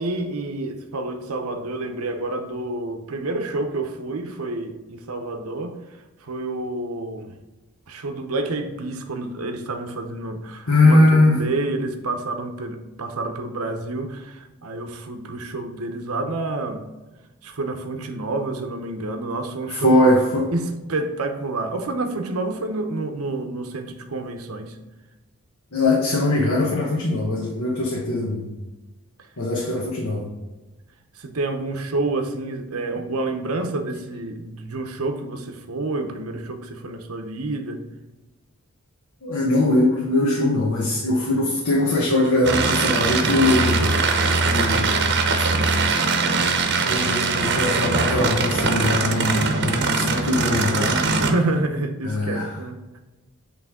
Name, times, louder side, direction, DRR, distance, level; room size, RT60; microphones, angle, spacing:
voice 1, 0.0-5.8 6.2-7.3 7.9-11.0 11.3-16.8 17.4-20.0 20.5-24.8 29.7-29.8 31.1-37.8 51.2-53.0, right 2 dB, 85° right, 6 dB, 0.8 m, -28 dB
voice 2, 10.7-11.4 19.7-20.5 25.7-28.5 29.4-30.3 39.2-44.0 44.4-45.1 46.8-51.0 52.0-52.5, left 2 dB, 85° left, -3 dB, 1.1 m, -21 dB
sound 1, 42.4-51.3, right 4 dB, 55° right, 0.8 m, -21 dB
8.3 x 3.3 x 3.6 m, 1.1 s
head